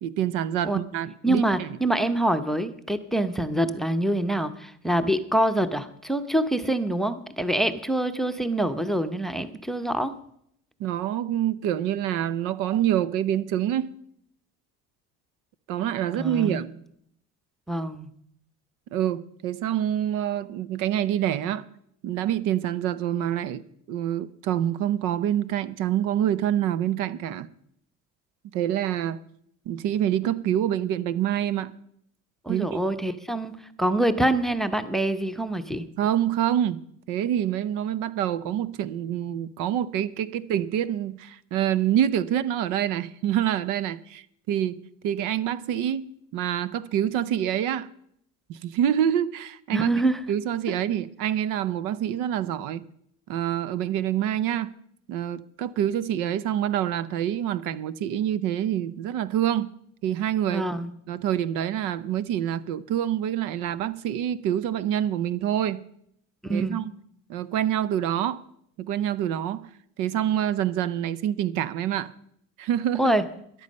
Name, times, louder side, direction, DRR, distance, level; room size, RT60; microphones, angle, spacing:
voice 1, 0.0-1.7 10.8-13.9 15.7-16.7 18.9-21.6 22.0-23.6 23.9-27.5 28.5-29.2 29.7-31.7 32.5-32.8 36.0-36.8 37.1-44.8 45.0-46.0 46.3-47.9 48.5-49.9 50.3-52.8 53.3-54.7 55.1-59.7 60.0-60.6 61.1-65.8 66.5-66.9 67.3-68.4 68.8-69.7 70.0-72.1 72.6-73.1, right 11 dB, 80° right, 0.7 m, -26 dB
voice 2, 1.2-10.1 16.2-16.7 17.7-18.1 32.4-35.8 49.7-50.2 60.5-60.9 66.4-66.8 73.0-73.3, right 1 dB, ahead, 0.7 m, -25 dB
14.0 x 11.0 x 5.4 m
cardioid pair, 115°, 32 cm